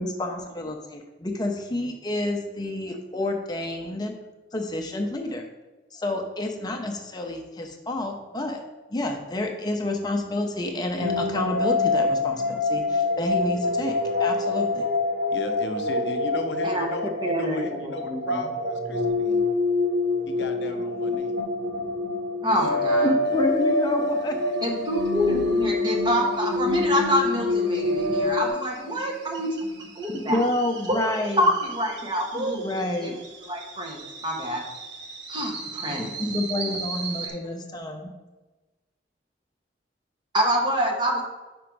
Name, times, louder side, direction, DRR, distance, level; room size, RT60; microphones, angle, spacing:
voice 1, 0.0-4.1 4.5-5.5 5.9-8.6 8.9-13.9 14.2-14.8 23.0-24.4 29.0-29.1 30.1-31.5 32.3-33.2 35.8-38.1, left 1 dB, 25° left, 3 dB, 0.6 m, -29 dB
sound 1, 11.0-28.5, left 2 dB, 60° right, 0.7 m, -26 dB
voice 2, 15.3-19.4 20.3-21.3, left 2 dB, 75° left, 6 dB, 0.7 m, -35 dB
voice 3, 17.2-18.5 22.4-23.1 24.6-29.6 30.0-30.4 30.9-31.0 31.4-32.7 33.0-34.6 35.3-36.1 37.2-37.3 40.3-41.2, equal, 25° right, 0 dB, 1.0 m, -26 dB
sound 2, 23.3-37.3, right 4 dB, 85° right, 0.9 m, -41 dB
5.2 x 4.9 x 4.6 m, 1.2 s
head